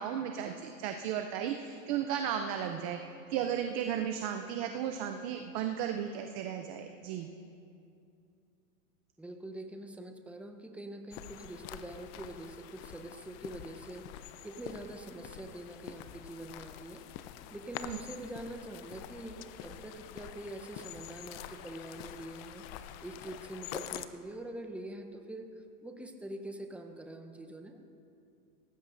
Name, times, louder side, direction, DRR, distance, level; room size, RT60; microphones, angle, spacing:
voice 1, 0.0-3.0 3.3-7.3 17.9-18.0, right 9 dB, 25° right, 6 dB, 0.3 m, -34 dB
voice 2, 9.2-14.1 14.4-17.0 17.5-22.7 23.0-27.8, right 1 dB, 5° right, 4 dB, 0.7 m, -44 dB
sound 1, 11.1-24.1, left 11 dB, 40° left, 0.6 m, -46 dB
18.0 x 15.5 x 2.6 m, 2.6 s
hypercardioid pair, 120°, 47 cm